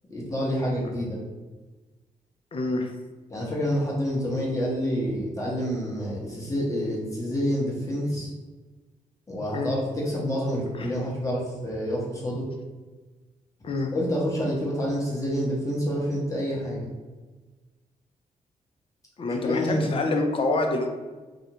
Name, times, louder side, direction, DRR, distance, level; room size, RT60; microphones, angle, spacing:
voice 1, 0.1-1.2 3.3-8.3 9.3-12.5 13.9-16.9 19.4-19.8, equal, 25° left, -5 dB, 0.8 m, -28 dB
voice 2, 2.5-2.9 9.5-9.7 10.8-10.9 13.6-13.9 19.2-20.9, left 2 dB, 40° left, 3 dB, 0.4 m, -26 dB
2.4 x 2.1 x 2.8 m, 1.3 s
cardioid pair, 95°, 14 cm